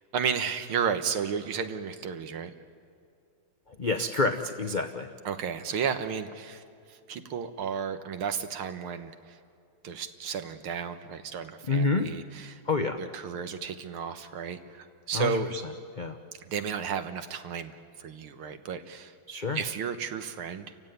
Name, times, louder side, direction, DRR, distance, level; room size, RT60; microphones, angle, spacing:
voice 1, 0.1-2.5 5.3-6.6 6.9-9.4 9.8-12.6 13.0-15.5 16.4-19.1 19.5-20.7, right 7 dB, 80° right, 8 dB, 2.1 m, -33 dB
voice 2, 3.7-5.1 11.7-12.1 12.7-13.0 15.1-15.6 16.0-16.2 19.3-19.6, left 3 dB, 65° left, 4 dB, 0.4 m, -28 dB
29.5 x 15.5 x 9.4 m, 2.4 s
omnidirectional pair, 2.3 m